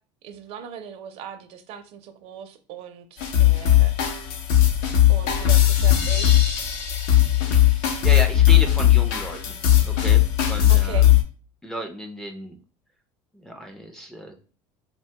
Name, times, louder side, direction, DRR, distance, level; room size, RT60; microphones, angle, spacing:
voice 1, 0.2-3.9 5.1-6.3 10.7-11.1, right 8 dB, 55° right, 0.5 m, -39 dB
sound 1, 3.2-11.2, left 12 dB, 70° left, 0.6 m, -18 dB
voice 2, 7.5-9.6 9.8-11.1 11.6-12.6 13.4-14.4, equal, 5° left, 0.4 m, -33 dB
2.9 x 2.1 x 2.8 m
cardioid pair, 140°, 12 cm